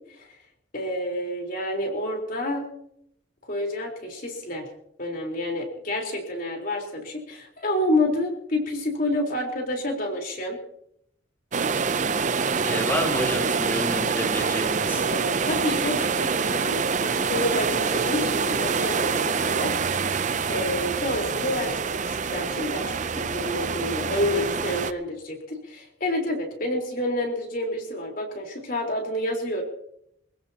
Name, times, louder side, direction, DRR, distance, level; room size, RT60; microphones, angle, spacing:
voice 1, 0.7-2.7 3.5-4.7 5.0-10.6 14.9-19.8 20.1-29.6, left 1 dB, 45° left, 1 dB, 4.1 m, -29 dB
sound 1, 11.5-24.9, right 5 dB, 40° right, 0.6 m, -26 dB
voice 2, 12.6-15.1 20.5-20.8, equal, 10° left, -1 dB, 3.2 m, -29 dB
26.0 x 16.0 x 2.9 m, 0.73 s
head